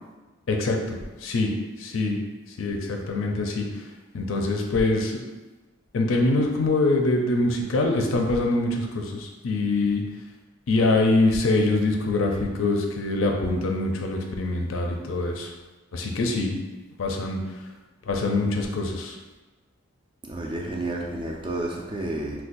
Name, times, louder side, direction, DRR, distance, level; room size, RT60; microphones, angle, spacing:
voice 1, 0.5-1.5 1.8-2.2 2.6-3.7 4.1-5.2 5.9-10.0 10.7-15.5 15.9-16.6 17.0-17.4 18.1-19.2, left 2 dB, 75° left, 2 dB, 0.4 m, -24 dB
voice 2, 20.3-22.4, right 1 dB, 25° right, 0 dB, 0.3 m, -30 dB
2.5 x 2.2 x 3.9 m, 1.2 s
head